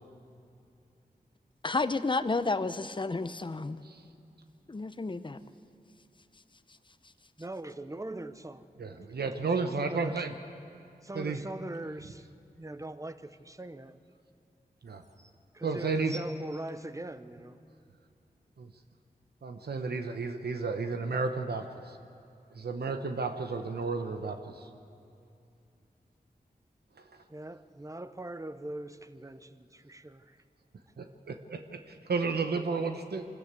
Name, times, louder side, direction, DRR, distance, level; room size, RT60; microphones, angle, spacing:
voice 1, 1.6-3.8 4.7-5.4, left 3 dB, 30° left, 13 dB, 0.7 m, -31 dB
voice 2, 7.4-8.7 9.6-10.3 11.0-12.3 12.6-14.0 15.5-17.6 27.3-30.4, right 1 dB, 20° right, 12 dB, 0.9 m, -41 dB
voice 3, 8.8-10.3 11.1-11.4 15.6-16.2 19.4-22.0 22.5-24.7 27.0-27.2 31.0-33.3, right 4 dB, 80° right, 6 dB, 1.0 m, -32 dB
sound 1, 14.4-14.5 14.8-15.3 16.0-17.7 18.4-18.5, equal, 45° right, 1.6 m, -50 dB
24.5 x 13.5 x 8.3 m, 2.5 s
cardioid pair, 50°, 17 cm